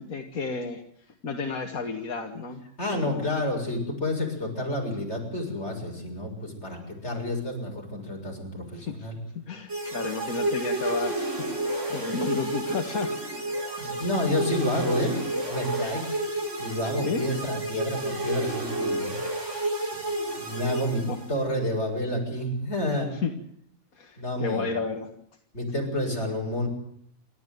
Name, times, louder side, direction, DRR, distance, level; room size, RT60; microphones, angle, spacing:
voice 1, 0.0-2.6 2.9-3.3 8.7-9.1 9.3-13.2 13.8-14.9 17.0-17.3 18.0-18.1 21.1-21.2 23.2-23.3 24.0-25.1, left 4 dB, 80° left, 4 dB, 2.1 m, -33 dB
voice 2, 2.8-9.2 13.8-16.1 16.6-19.1 20.4-23.1 24.2-24.7 25.5-26.7, left 1 dB, 50° left, 1 dB, 7.1 m, -29 dB
sound 1, 9.7-21.5, right 1 dB, 55° right, 4.5 m, -30 dB
29.0 x 13.0 x 9.4 m, 0.68 s
omnidirectional pair, 1.5 m